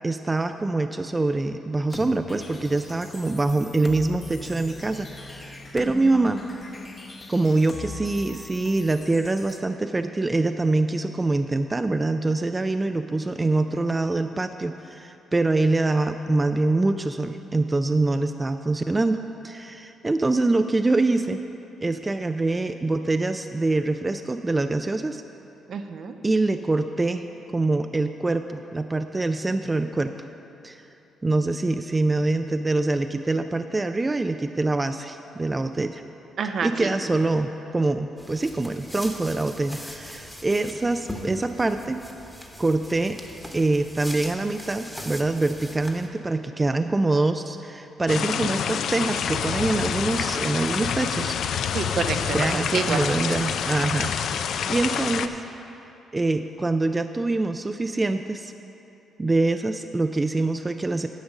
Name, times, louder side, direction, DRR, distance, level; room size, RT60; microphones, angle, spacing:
voice 1, 0.0-6.4 7.3-19.2 19.4-21.4 21.8-25.2 26.2-27.2 27.5-30.1 30.6-30.9 31.2-36.0 36.6-42.0 42.6-43.2 43.5-51.4 52.3-55.4 56.1-58.5 59.2-61.1, right 2 dB, 20° right, 8 dB, 0.3 m, -24 dB
sound 1, 1.9-9.6, left 3 dB, 30° left, 0.8 m, -40 dB
voice 2, 25.7-26.2 36.4-36.9 51.7-53.0, right 6 dB, 60° right, 7 dB, 0.6 m, -28 dB
sound 2, 38.2-46.1, equal, ahead, 1.1 m, -40 dB
sound 3, 48.1-55.3, left 8 dB, 70° left, 0.4 m, -27 dB
10.0 x 5.2 x 7.1 m, 2.9 s
cardioid pair, 90°, 0 cm